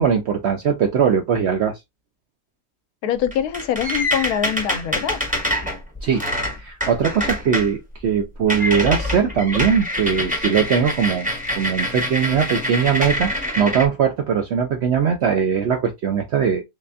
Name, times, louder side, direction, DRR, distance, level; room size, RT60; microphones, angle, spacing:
voice 1, 0.0-1.8 6.0-6.2 6.6-11.3 11.5-16.6, right 7 dB, 70° right, 0.6 m, -20 dB
voice 2, 3.0-5.2, left 9 dB, 80° left, 1.1 m, -24 dB
sound 1, 3.2-7.7 8.0-8.2 8.5-13.9, left 1 dB, 10° right, 0.6 m, -25 dB
3.3 x 3.3 x 2.5 m
omnidirectional pair, 1.6 m